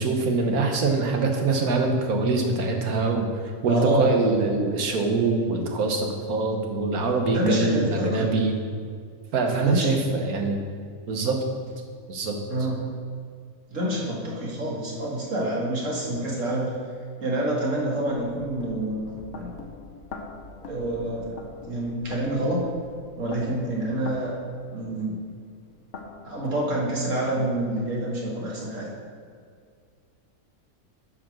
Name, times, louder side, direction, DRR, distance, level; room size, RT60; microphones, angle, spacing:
voice 1, 0.0-3.3 3.6-8.5 9.3-10.6 11.1-11.4 12.1-12.4, right 3 dB, 85° right, 3 dB, 1.6 m, -24 dB
voice 2, 3.7-4.1 7.3-8.3 9.6-10.0 12.5-12.9 13.7-16.7 17.2-19.5 20.6-21.4 21.6-22.7 23.1-24.3 24.7-25.2 26.2-28.9, right 1 dB, 60° right, -4 dB, 2.2 m, -27 dB
sound 1, 16.7-16.8 17.5-26.6, left 4 dB, 60° left, 1.1 m, -44 dB
9.4 x 5.1 x 6.2 m, 2.1 s
omnidirectional pair, 1.5 m